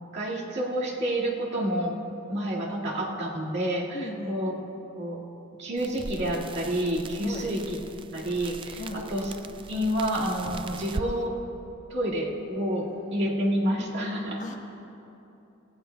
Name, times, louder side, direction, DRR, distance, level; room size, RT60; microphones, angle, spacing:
voice 1, 0.1-2.0 2.3-4.5 5.0-5.2 5.6-7.6 8.1-9.3 9.7-11.4 11.9-14.4, equal, 55° right, -4 dB, 1.9 m, -29 dB
voice 2, 3.9-4.4 7.2-7.5 8.8-9.0 14.4-14.5, left 1 dB, 35° left, 0 dB, 1.2 m, -37 dB
sound 1, 5.8-11.1, right 3 dB, 25° right, 0.3 m, -40 dB
19.0 x 16.5 x 2.3 m, 2.9 s
head